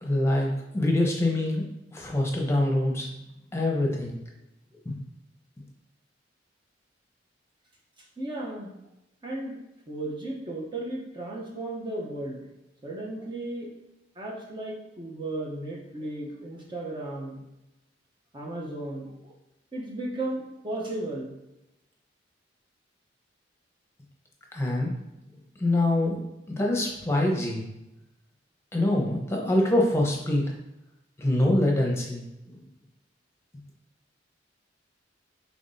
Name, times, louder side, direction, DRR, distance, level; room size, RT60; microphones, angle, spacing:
voice 1, 0.0-1.7 1.9-3.1 3.5-4.2 4.8-5.0 24.5-24.9 25.6-26.2 26.5-27.6 28.7-30.5 31.2-32.3, left 1 dB, 15° left, -1 dB, 0.9 m, -24 dB
voice 2, 8.2-8.7 9.2-9.6 9.9-12.4 12.8-13.7 14.2-17.4 18.3-19.3 19.7-21.3, right 1 dB, 25° right, -2 dB, 0.8 m, -35 dB
5.9 x 3.4 x 2.7 m, 0.90 s
head